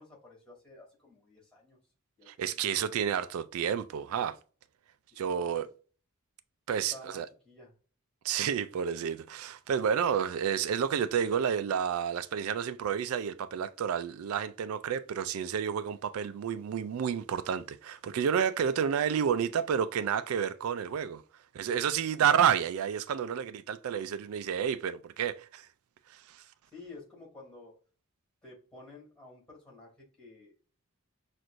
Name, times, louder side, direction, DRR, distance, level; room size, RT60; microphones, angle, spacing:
voice 1, 0.0-1.8 2.2-2.7 5.2-5.7 6.9-7.2 7.4-7.7 26.7-27.7 28.4-30.5, left 2 dB, 5° left, 2.3 m, -51 dB
voice 2, 2.3-4.4 5.2-5.7 6.7-7.3 8.2-21.2 21.5-25.7 26.1-26.4, right 8 dB, 90° right, 0.3 m, -30 dB
6.0 x 2.5 x 2.5 m
head